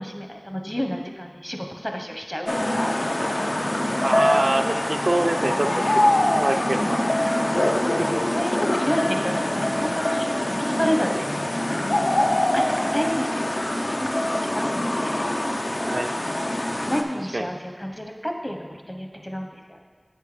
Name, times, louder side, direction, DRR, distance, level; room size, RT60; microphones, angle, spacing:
voice 1, 0.0-2.9 4.5-4.7 5.4-5.7 6.6-6.9 7.8-11.8 12.4-13.5 13.8-15.2 16.9-19.8, equal, 15° left, 3 dB, 0.9 m, -30 dB
sound 1, 2.5-17.0, left 1 dB, 55° left, 0.6 m, -24 dB
voice 2, 4.0-5.8 6.4-7.0 8.0-8.2 11.1-11.2 15.8-16.2 17.3-17.5, right 1 dB, 70° right, 5 dB, 0.4 m, -25 dB
7.6 x 5.5 x 4.9 m, 1.5 s
wide cardioid pair, 40°, 0 cm